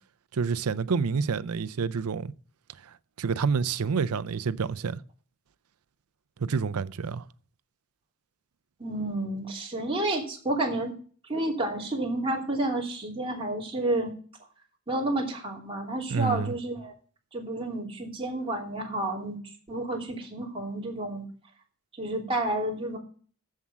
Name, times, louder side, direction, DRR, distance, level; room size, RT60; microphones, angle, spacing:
voice 1, 0.3-2.3 2.8-5.0 6.4-7.2 16.1-16.5, right 5 dB, 85° right, 0.5 m, -28 dB
voice 2, 8.8-10.9 11.3-14.1 14.9-16.9 17.3-19.4 19.7-21.3 22.0-23.0, right 1 dB, 25° right, 3.0 m, -30 dB
7.5 x 7.4 x 7.3 m
head